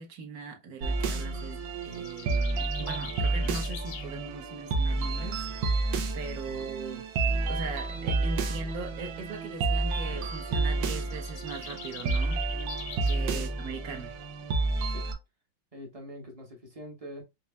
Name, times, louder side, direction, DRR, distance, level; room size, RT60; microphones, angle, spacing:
voice 1, 0.0-7.0 7.5-12.4 13.1-14.1, right 4 dB, 60° right, 1.2 m, -40 dB
sound 1, 0.8-15.1, right 3 dB, 80° right, 1.4 m, -30 dB
sound 2, 1.8-4.1 10.7-13.3, left 8 dB, 85° left, 1.5 m, -44 dB
voice 2, 15.7-17.2, equal, 30° right, 0.7 m, -44 dB
5.4 x 2.6 x 2.2 m
omnidirectional pair, 2.1 m